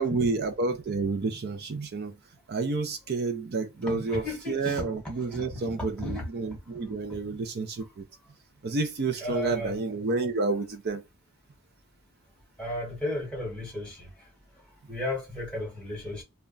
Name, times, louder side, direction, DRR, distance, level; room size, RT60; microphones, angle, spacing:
voice 1, 0.0-2.1 2.5-8.0 8.6-11.0, right 3 dB, 45° right, 0.4 m, -30 dB
voice 2, 3.9-4.8 5.3-6.3 6.9-7.0 9.2-9.8 12.6-14.1 14.9-16.2, left 1 dB, 5° left, 1.1 m, -34 dB
2.3 x 2.1 x 3.7 m
head